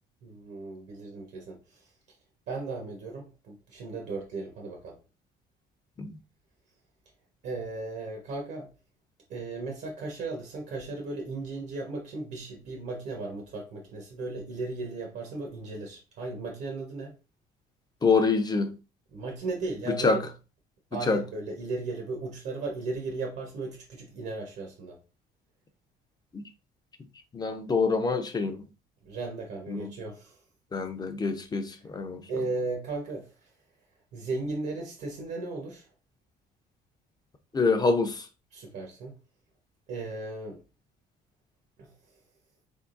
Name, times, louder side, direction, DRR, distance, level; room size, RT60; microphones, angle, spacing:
voice 1, 0.2-1.9 2.5-5.0 7.4-8.7 9.3-17.1 19.1-20.3 20.9-25.0 29.0-30.4 32.3-33.5 34.1-35.9 38.5-39.2 39.9-40.6 41.8-41.9, right 3 dB, 75° right, 1.1 m, -36 dB
voice 2, 18.0-18.7 20.0-20.2 21.1-21.2 26.3-26.4 27.3-28.6 29.7-29.9 30.7-32.2 37.5-38.2, left 4 dB, 25° left, 0.5 m, -26 dB
3.7 x 3.6 x 2.5 m
cardioid pair, 110°, 17 cm